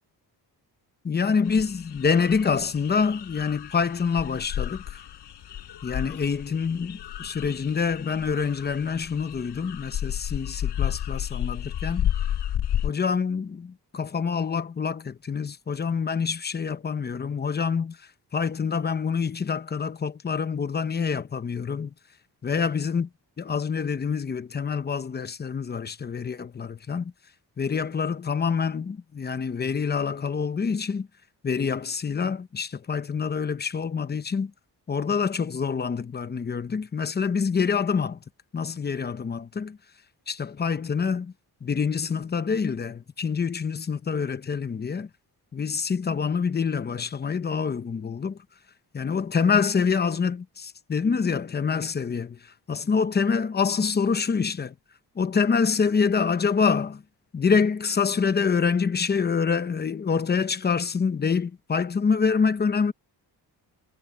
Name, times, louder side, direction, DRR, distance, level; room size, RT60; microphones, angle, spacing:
voice 1, 1.0-5.0 5.8-12.1 12.8-18.0 18.3-21.9 22.4-23.1 23.4-27.1 27.6-31.1 31.4-34.5 34.9-38.2 38.5-39.8 40.3-41.3 41.6-45.1 45.5-48.4 48.9-52.4 52.7-54.7 55.2-57.0 57.3-62.9, left 5 dB, 25° left, 0.8 m, -26 dB
sound 1, 1.5-12.9, left 11 dB, 85° left, 4.8 m, -32 dB
wide cardioid pair, 175°, 40 cm